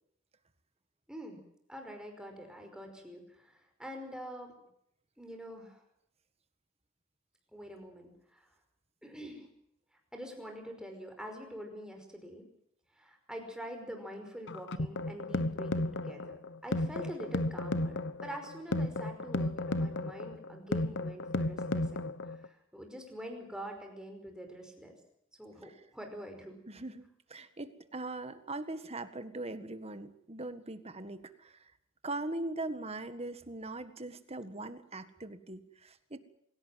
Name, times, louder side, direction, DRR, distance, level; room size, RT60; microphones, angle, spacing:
voice 1, 1.1-1.4 1.7-4.6 5.2-5.8 7.5-8.5 9.0-9.5 10.1-12.4 13.0-25.0 25.4-26.5, equal, 5° right, 3 dB, 5.3 m, -45 dB
sound 1, 14.5-22.5, left 2 dB, 55° left, 1.1 m, -34 dB
voice 2, 26.7-27.0 27.3-31.7 32.0-36.2, right 2 dB, 30° right, 10 dB, 1.7 m, -41 dB
26.0 x 17.0 x 7.7 m, 0.73 s
head